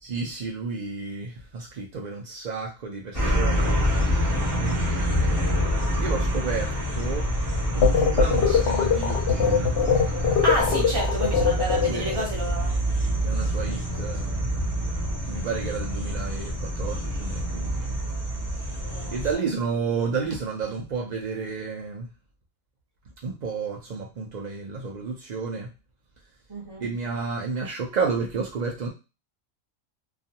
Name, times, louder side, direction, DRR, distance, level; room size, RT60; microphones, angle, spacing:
voice 1, 0.0-3.7 4.5-7.3 7.7-9.7 10.7-10.9 11.9-12.1 13.2-14.5 15.3-18.0 19.1-22.1 23.2-25.7 26.8-28.9, right 5 dB, 80° right, 0.4 m, -31 dB
sound 1, 3.1-19.3, equal, 15° left, 0.9 m, -26 dB
sound 2, 7.8-12.2, left 7 dB, 65° left, 0.8 m, -22 dB
voice 2, 10.4-13.1 18.8-19.2 26.5-26.9, right 1 dB, 20° right, 0.9 m, -30 dB
2.4 x 2.3 x 2.8 m
omnidirectional pair, 1.4 m